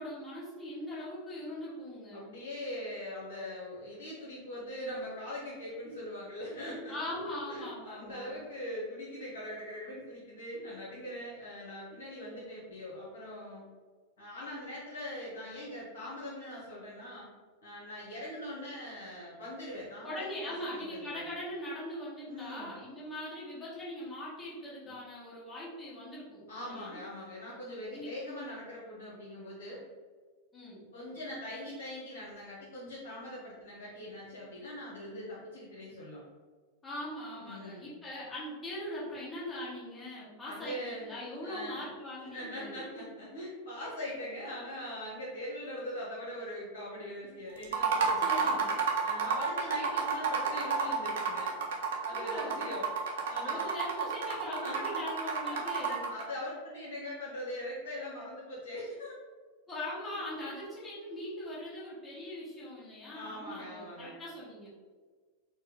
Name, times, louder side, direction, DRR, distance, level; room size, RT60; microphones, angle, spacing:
voice 1, 0.0-2.3 6.9-8.3 20.0-27.0 27.9-28.1 30.5-30.8 36.8-42.7 48.2-48.8 52.1-52.7 53.4-56.0 59.7-64.7, left 1 dB, 15° left, -8 dB, 1.4 m, -41 dB
voice 2, 2.1-7.2 7.5-13.6 14.2-17.3 17.6-20.2 20.4-21.3 22.3-22.8 24.9-25.0 26.5-29.8 30.9-36.2 37.4-37.9 40.5-41.1 41.4-41.9 42.3-48.6 49.0-51.6 52.0-52.9 53.3-54.1 54.4-55.1 55.5-59.2 60.2-60.7 63.1-64.1, left 1 dB, 60° left, -5 dB, 0.9 m, -42 dB
sound 1, 47.6-56.2, right 5 dB, 60° right, 0.7 m, -31 dB
4.3 x 2.1 x 3.4 m, 1.5 s
figure-of-eight pair, 90°, 0 cm